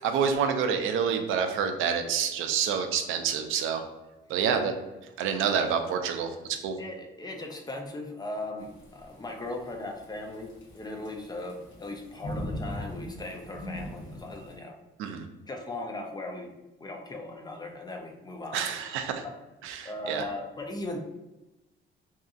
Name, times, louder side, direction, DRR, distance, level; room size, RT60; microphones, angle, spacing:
voice 1, 0.0-3.8 4.3-4.7 5.2-6.7 15.0-15.2 18.5-19.2 19.6-20.2, right 7 dB, 85° right, 6 dB, 0.4 m, -28 dB
voice 2, 6.8-14.8 15.5-16.5 16.8-18.7 19.8-21.0, left 2 dB, 20° left, 2 dB, 0.5 m, -38 dB
Thunderstorm / Rain, 8.6-14.6, equal, 75° left, 0.9 m, -40 dB
2.7 x 2.5 x 2.4 m, 1.0 s
cardioid pair, 90°, 20 cm